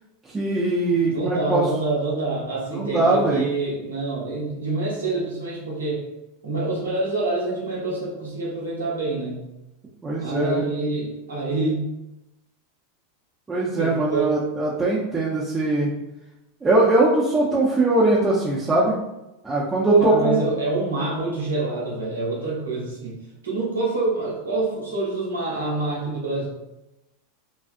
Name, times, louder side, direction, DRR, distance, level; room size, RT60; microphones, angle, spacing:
voice 1, 0.3-1.6 2.7-3.5 10.0-10.6 13.5-15.9 16.6-19.0 19.4-20.5, right 2 dB, 15° right, -7 dB, 0.5 m, -21 dB
voice 2, 1.1-6.0 6.4-9.4 10.2-11.8 13.7-14.3 20.0-23.1 23.4-26.5, right 2 dB, 90° right, -4 dB, 0.9 m, -26 dB
2.4 x 2.3 x 2.5 m, 0.95 s
hypercardioid pair, 95°, 0 cm